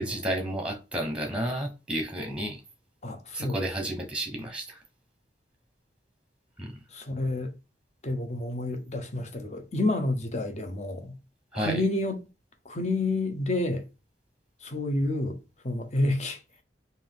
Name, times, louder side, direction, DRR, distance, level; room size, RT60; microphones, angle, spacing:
voice 1, 0.0-2.6 3.3-4.8 6.6-6.8 11.5-11.8, right 1 dB, 5° right, 0.9 m, -31 dB
voice 2, 3.0-3.7 6.9-7.5 8.0-11.2 11.5-12.2 12.6-13.8 14.6-15.4 15.6-16.4, left 2 dB, 40° left, 0.8 m, -29 dB
4.1 x 2.6 x 3.6 m
head